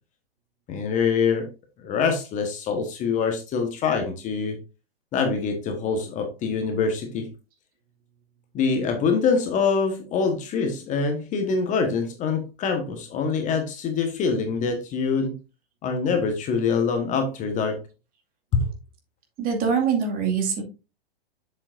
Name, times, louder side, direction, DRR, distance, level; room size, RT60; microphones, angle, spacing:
voice 1, 0.7-1.5 1.8-4.6 5.1-7.3 8.5-15.3 15.8-17.8 18.5-18.6, left 5 dB, 25° left, 1.3 m, -24 dB
voice 2, 19.4-20.6, right 6 dB, 30° right, 2.3 m, -23 dB
7.6 x 7.0 x 2.6 m
hypercardioid pair, 115°, 30 cm